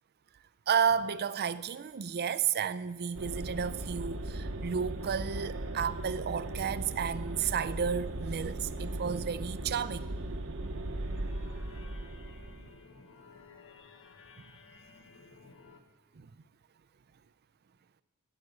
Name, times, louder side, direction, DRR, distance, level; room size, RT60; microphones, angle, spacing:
voice 1, 0.7-10.2 11.2-11.3 16.2-16.3, right 7 dB, 45° right, 0.5 m, -32 dB
sound 1, 3.1-12.8, right 2 dB, 65° right, 1.0 m, -38 dB
sound 2, 10.6-15.8, left 4 dB, 60° left, 1.2 m, -55 dB
14.0 x 8.4 x 8.2 m
head